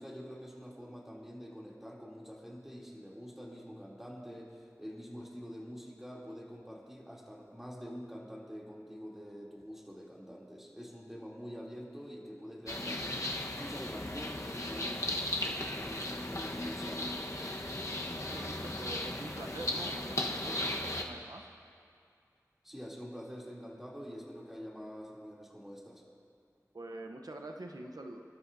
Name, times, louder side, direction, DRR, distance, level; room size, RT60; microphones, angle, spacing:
voice 1, 0.0-17.4 22.6-26.0, equal, 5° right, -4 dB, 3.1 m, -46 dB
sound 1, 12.7-21.0, left 1 dB, 55° left, 1.2 m, -36 dB
voice 2, 18.2-21.5 26.7-28.2, right 2 dB, 80° right, 3 dB, 0.9 m, -45 dB
25.5 x 12.5 x 2.7 m, 2.4 s
wide cardioid pair, 45°, 6 cm